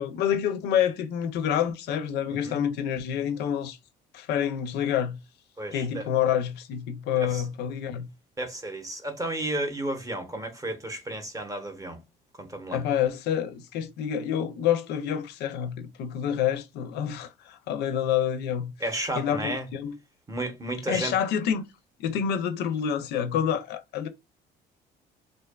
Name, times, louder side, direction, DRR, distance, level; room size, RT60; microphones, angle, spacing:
voice 1, 0.0-3.8 4.1-5.2 5.7-8.1 12.7-18.7 19.2-19.9 20.9-21.6 22.0-24.1, left 9 dB, 80° left, 0.4 m, -27 dB
voice 2, 2.3-2.6 5.6-6.1 7.2-7.4 8.4-12.0 12.4-12.8 18.8-19.7 20.3-21.1, right 1 dB, 20° right, 0.6 m, -32 dB
2.6 x 2.2 x 2.2 m
cardioid pair, 110°, 17 cm